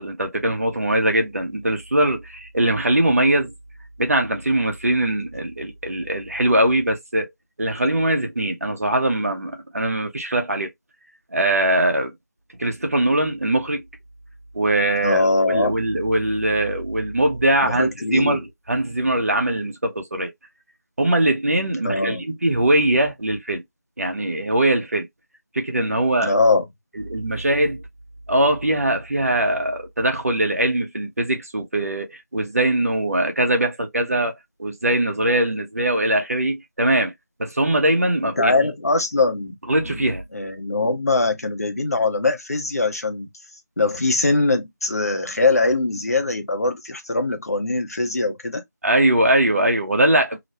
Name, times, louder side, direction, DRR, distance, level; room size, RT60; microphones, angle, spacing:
voice 1, 0.0-3.5 4.0-7.3 7.6-10.7 11.3-12.1 12.6-13.8 14.5-20.3 21.0-23.6 24.0-25.1 25.5-26.3 26.9-27.8 28.3-34.3 34.6-37.1 37.4-38.5 39.7-40.2 48.8-50.4, right 1 dB, 50° right, 0.8 m, -21 dB
voice 2, 15.0-15.8 17.6-18.4 21.8-22.2 26.2-26.6 38.4-39.6 39.9-40.0 40.3-43.3 43.8-48.6, left 3 dB, 50° left, 0.7 m, -21 dB
3.0 x 2.1 x 2.7 m
figure-of-eight pair, 165°, 10 cm